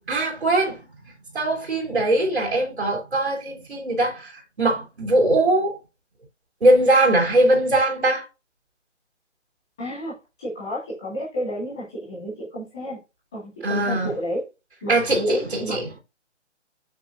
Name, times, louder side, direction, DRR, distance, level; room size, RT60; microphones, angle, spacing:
voice 1, 0.1-0.8 1.3-4.3 4.6-5.8 6.6-8.2 13.6-14.1 14.9-15.9, right 1 dB, 60° right, 3.3 m, -21 dB
voice 2, 9.8-13.0 13.3-14.4 14.8-15.8, equal, 5° left, 0.5 m, -31 dB
6.9 x 6.1 x 2.6 m
figure-of-eight pair, 145°, 36 cm